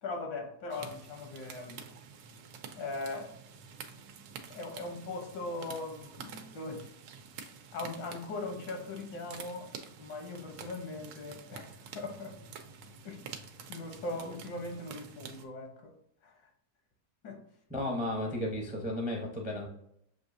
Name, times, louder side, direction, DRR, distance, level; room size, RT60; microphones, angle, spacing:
voice 1, 0.0-1.8 2.7-3.4 4.5-6.9 7.7-9.7 10.0-12.4 13.0-15.9 16.2-16.5 17.2-17.4, left 2 dB, 80° left, 1.6 m, -40 dB
sound 1, 0.7-15.4, right 6 dB, 85° right, 1.3 m, -48 dB
voice 2, 17.7-19.7, left 1 dB, 10° right, 0.3 m, -34 dB
7.0 x 2.6 x 2.6 m
omnidirectional pair, 1.9 m